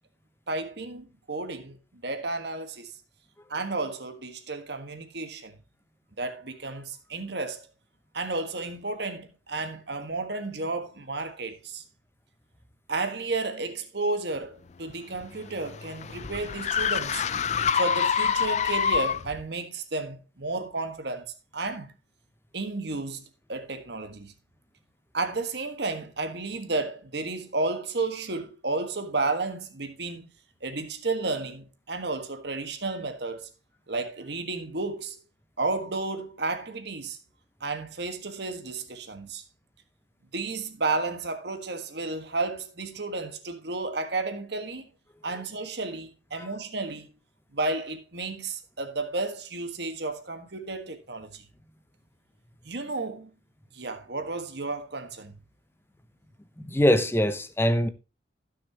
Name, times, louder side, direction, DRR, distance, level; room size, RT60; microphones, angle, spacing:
voice 1, 0.5-2.9 3.5-5.6 6.2-7.7 8.1-11.8 12.9-17.2 17.7-21.9 22.5-23.2 23.5-24.3 25.1-30.3 30.6-33.5 33.9-35.2 35.6-37.2 37.6-39.4 40.3-44.8 45.2-47.1 47.5-51.4 52.6-53.3 53.7-55.4, right 3 dB, 55° right, 1.6 m, -32 dB
sound 1, 14.9-19.4, left 7 dB, 35° left, 0.4 m, -26 dB
voice 2, 56.6-57.9, equal, 10° left, 0.8 m, -23 dB
15.5 x 6.5 x 2.9 m
head